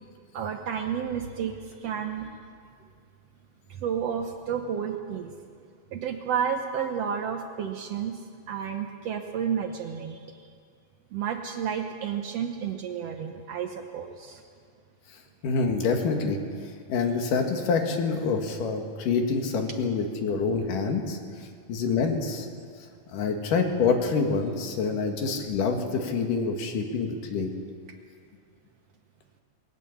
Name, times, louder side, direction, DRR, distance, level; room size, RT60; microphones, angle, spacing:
voice 1, 0.3-2.4 3.7-5.3 5.9-8.2 8.5-10.4 11.1-14.4 23.2-23.3, right 7 dB, 85° right, 5 dB, 1.4 m, -31 dB
voice 2, 15.4-16.4 16.9-22.5 23.1-27.5, left 4 dB, 65° left, 4 dB, 3.2 m, -26 dB
21.5 x 18.0 x 7.2 m, 2.1 s
omnidirectional pair, 4.3 m